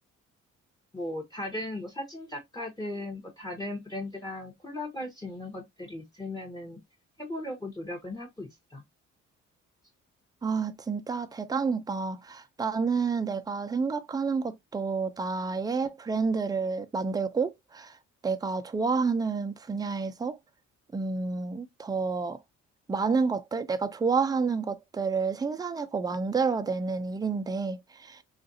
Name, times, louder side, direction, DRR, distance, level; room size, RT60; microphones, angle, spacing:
voice 1, 0.9-6.8 7.2-8.8, left 1 dB, 15° left, 0.9 m, -37 dB
voice 2, 10.4-18.0 18.2-20.4 20.9-22.4 22.9-28.2, right 4 dB, 15° right, 0.4 m, -29 dB
3.7 x 2.4 x 2.6 m
cardioid pair, 90°, 30 cm